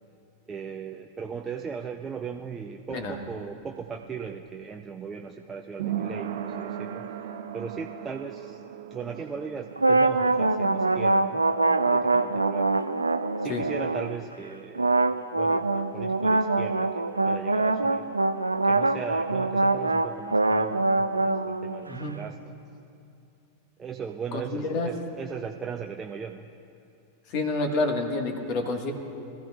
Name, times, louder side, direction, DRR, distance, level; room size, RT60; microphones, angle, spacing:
voice 1, 0.5-7.1 7.5-8.6 8.9-12.8 13.4-18.1 18.7-22.6 23.8-26.5, right 6 dB, 20° right, 3 dB, 0.5 m, -38 dB
sound 1, 2.8-14.2 14.5-14.6, right 9 dB, 60° right, 0.7 m, -39 dB
sound 2, 9.8-14.2 14.8-22.0, right 2 dB, 80° right, 0.4 m, -24 dB
voice 2, 21.9-22.2 24.3-25.0 27.3-28.9, left 2 dB, 45° left, 3 dB, 1.8 m, -28 dB
23.5 x 14.0 x 2.5 m, 2.6 s
figure-of-eight pair, 90°, 0 cm